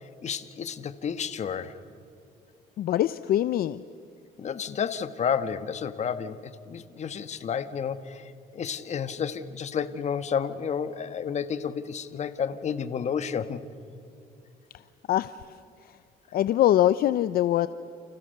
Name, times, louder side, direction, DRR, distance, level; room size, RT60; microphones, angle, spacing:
voice 1, 0.2-1.8 4.4-13.6, left 7 dB, 40° left, 11 dB, 1.5 m, -31 dB
voice 2, 2.8-3.8 15.1-15.3 16.3-17.7, left 12 dB, 60° left, 14 dB, 0.7 m, -23 dB
30.0 x 29.5 x 6.7 m, 2.5 s
cardioid pair, 110°, 17 cm